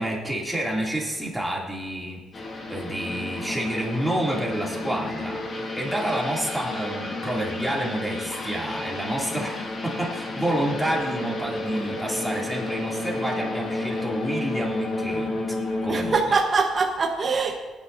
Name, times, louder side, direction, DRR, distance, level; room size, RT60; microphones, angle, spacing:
voice 1, 0.0-2.4 2.7-15.6 15.8-16.1, right 1 dB, 5° right, -3 dB, 2.7 m, -29 dB
sound 1, 2.3-16.2, left 2 dB, 45° left, 1.8 m, -31 dB
voice 2, 15.9-17.5, right 4 dB, 30° right, 1 dB, 1.1 m, -23 dB
19.5 x 10.0 x 2.7 m, 1.3 s
cardioid pair, 120°, 0 cm